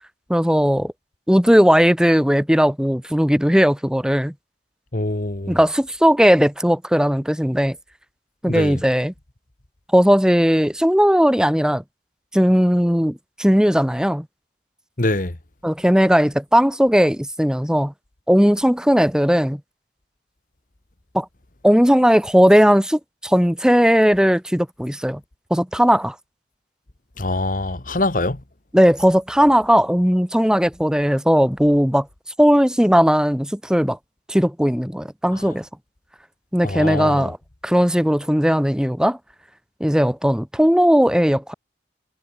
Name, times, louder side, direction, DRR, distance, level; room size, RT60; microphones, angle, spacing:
voice 1, 0.3-0.9 1.3-4.3 5.5-7.8 8.4-9.1 9.9-11.8 12.3-14.2 15.6-17.9 18.3-19.6 21.1-21.3 21.6-25.2 25.5-26.1 28.7-32.1 32.4-34.0 34.3-35.7 36.5-37.4 37.6-39.2 39.8-41.5, equal, 5° right, 1.4 m, -17 dB
voice 2, 4.9-5.6 8.5-8.8 15.0-15.3 27.2-28.4 36.6-37.3, left 2 dB, 50° left, 1.5 m, -24 dB
head